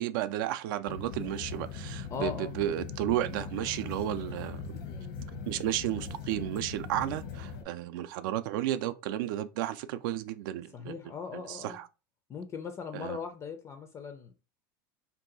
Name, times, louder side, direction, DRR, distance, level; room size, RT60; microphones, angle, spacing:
voice 1, 0.0-4.8 5.5-11.0 11.3-11.9 12.9-13.2, right 12 dB, 70° right, 0.4 m, -33 dB
sound 1, 0.9-7.6, left 5 dB, 75° left, 0.9 m, -40 dB
voice 2, 2.1-2.5 10.7-11.8 12.3-14.4, left 6 dB, 25° left, 0.4 m, -39 dB
2.7 x 2.3 x 3.8 m
supercardioid pair, 125°, 11 cm